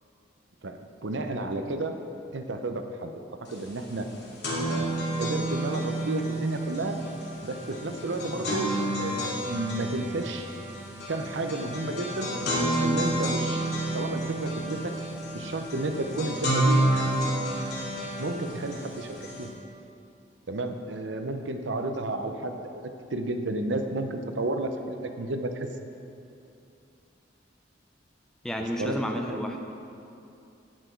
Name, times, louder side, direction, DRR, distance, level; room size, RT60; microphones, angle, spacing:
voice 1, 0.6-2.0 2.3-3.1 3.5-4.1 4.6-7.0 7.4-8.7 9.0-10.5 11.1-12.3 12.8-14.9 15.3-17.2 18.2-19.5 20.5-25.7 28.8-29.0 29.3-29.4, right 2 dB, 75° right, 6 dB, 0.7 m, -32 dB
sound 1, 3.5-3.6 3.9-19.4, right 1 dB, 60° left, 2.7 m, -30 dB
voice 2, 28.4-29.7, equal, 5° left, 3 dB, 0.6 m, -31 dB
10.5 x 9.3 x 4.6 m, 2.7 s
head